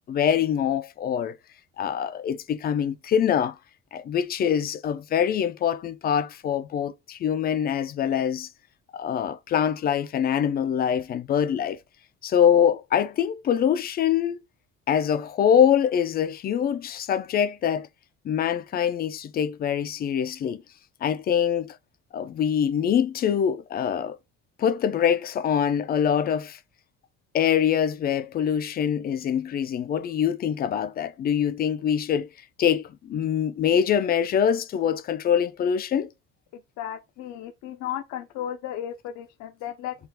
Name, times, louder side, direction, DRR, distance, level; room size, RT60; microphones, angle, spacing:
voice 1, 0.1-1.3 1.8-3.6 3.9-8.5 8.9-11.8 12.2-14.4 14.9-17.9 18.2-20.6 21.0-21.7 22.1-24.2 24.6-26.6 27.3-32.3 32.6-36.1, left 8 dB, 30° left, 0.4 m, -24 dB
voice 2, 36.5-40.0, left 10 dB, 70° left, 0.6 m, -35 dB
4.5 x 2.4 x 3.8 m
cardioid pair, 165°, 29 cm